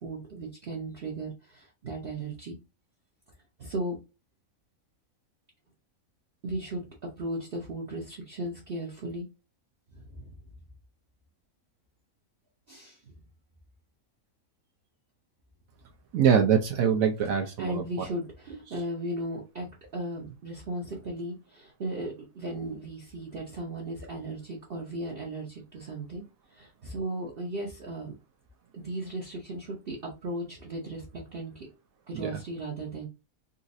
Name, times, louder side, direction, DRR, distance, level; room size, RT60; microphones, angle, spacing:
voice 1, 0.0-2.6 3.6-4.0 6.4-9.3 9.9-10.4 12.7-13.2 17.6-26.2 26.5-28.1 28.7-31.7 32.1-33.1, right 1 dB, 45° right, -2 dB, 0.9 m, -36 dB
voice 2, 16.1-18.1 32.1-32.4, right 7 dB, 75° right, 3 dB, 1.0 m, -24 dB
4.0 x 2.4 x 2.5 m, 0.27 s
omnidirectional pair, 1.5 m